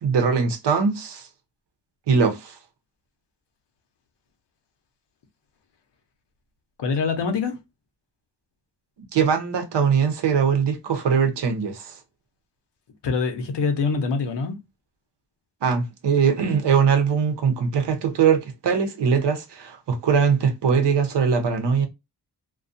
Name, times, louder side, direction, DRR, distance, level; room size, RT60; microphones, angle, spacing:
voice 1, 0.0-1.3 2.1-2.6 9.1-12.0 15.6-21.9, right 6 dB, 80° right, 0.8 m, -21 dB
voice 2, 6.8-7.6 13.0-14.6, left 4 dB, 90° left, 0.7 m, -24 dB
2.4 x 2.2 x 2.5 m
wide cardioid pair, 85°, 41 cm